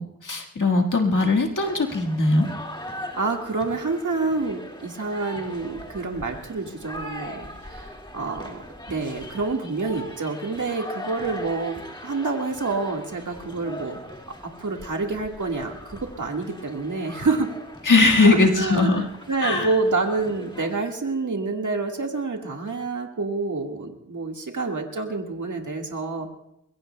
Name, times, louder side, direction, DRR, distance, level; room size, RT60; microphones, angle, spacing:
voice 1, 0.0-2.5 17.8-19.0 19.4-19.7, left 3 dB, 90° left, 1 dB, 1.7 m, -20 dB
sound 1, 1.6-20.8, left 1 dB, 15° left, 2.0 m, -40 dB
voice 2, 3.1-8.6 8.9-14.0 14.3-17.5 18.2-26.3, right 3 dB, 80° right, 2 dB, 1.7 m, -28 dB
24.5 x 22.0 x 2.2 m, 0.80 s
wide cardioid pair, 55°, 30 cm